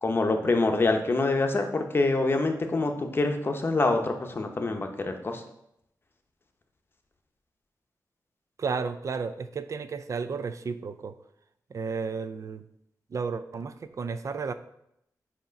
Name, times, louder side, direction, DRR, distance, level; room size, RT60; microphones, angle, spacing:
voice 1, 0.0-5.4, left 3 dB, 35° left, 5 dB, 0.7 m, -26 dB
voice 2, 8.6-11.1 11.7-12.6 13.1-14.5, right 5 dB, 50° right, 12 dB, 0.4 m, -33 dB
7.9 x 2.9 x 5.1 m, 0.77 s
wide cardioid pair, 130°, 7 cm